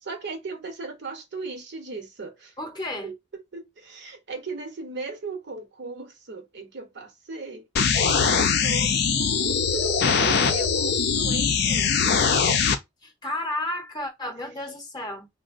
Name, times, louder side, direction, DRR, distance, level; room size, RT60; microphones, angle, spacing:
voice 1, 0.0-2.6 3.0-7.7 8.2-11.9 12.4-12.7, right 3 dB, 60° right, 0.8 m, -37 dB
voice 2, 2.6-3.1 13.0-15.3, left 1 dB, 20° left, 0.8 m, -32 dB
sound 1, 7.8-12.8, left 6 dB, 55° left, 0.5 m, -22 dB
3.8 x 2.1 x 2.5 m
head